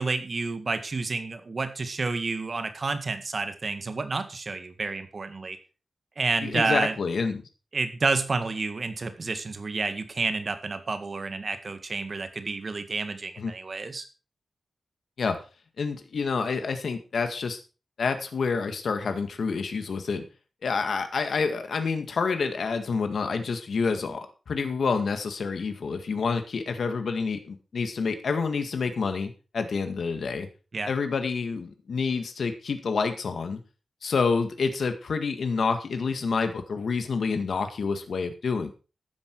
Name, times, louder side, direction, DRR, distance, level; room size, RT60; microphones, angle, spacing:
voice 1, 0.0-5.6 6.2-6.9 7.7-14.0 30.7-30.9, right 3 dB, 45° right, 9 dB, 1.8 m, -30 dB
voice 2, 6.4-7.4 13.4-13.5 15.2-15.4 15.8-17.6 18.0-20.2 20.6-30.5 30.9-33.6 34.0-38.7, left 5 dB, 70° left, 7 dB, 1.9 m, -28 dB
13.0 x 10.0 x 4.7 m, 0.33 s
wide cardioid pair, 125°, 0 cm